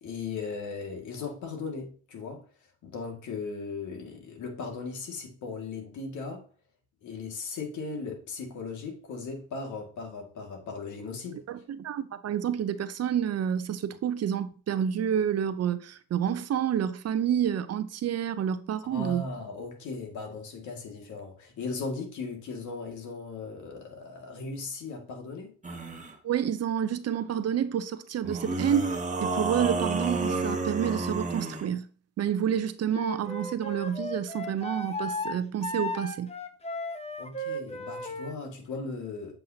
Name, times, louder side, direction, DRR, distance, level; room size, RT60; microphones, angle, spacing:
voice 1, 0.0-2.4 2.8-6.5 7.0-11.4 18.9-25.5 37.2-39.4, left 4 dB, 75° left, 2.2 m, -37 dB
voice 2, 11.3-19.2 26.2-28.9 29.2-31.9 32.2-36.3, right 9 dB, 55° right, 0.7 m, -29 dB
sound 1, 25.6-26.1 28.2-31.7, right 3 dB, 25° right, 1.2 m, -30 dB
Wind instrument woodwind instrument, 32.9-38.4, left 1 dB, 20° left, 0.8 m, -35 dB
7.9 x 5.5 x 2.8 m
cardioid pair, 90°, 30 cm